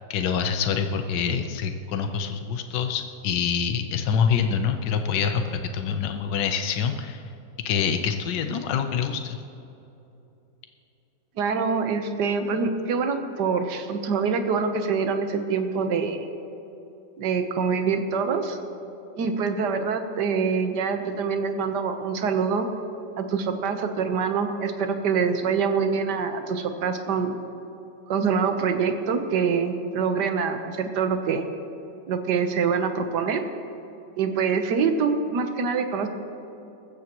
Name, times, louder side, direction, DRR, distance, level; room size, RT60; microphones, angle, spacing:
voice 1, 0.1-7.2 7.6-9.4, left 7 dB, 70° left, 6 dB, 1.5 m, -26 dB
voice 2, 11.4-16.3 17.2-18.6 19.1-22.7 23.2-27.4 28.1-31.5 32.1-33.4 34.2-36.1, right 5 dB, 65° right, 6 dB, 1.6 m, -25 dB
20.0 x 15.0 x 3.0 m, 2.9 s
omnidirectional pair, 2.0 m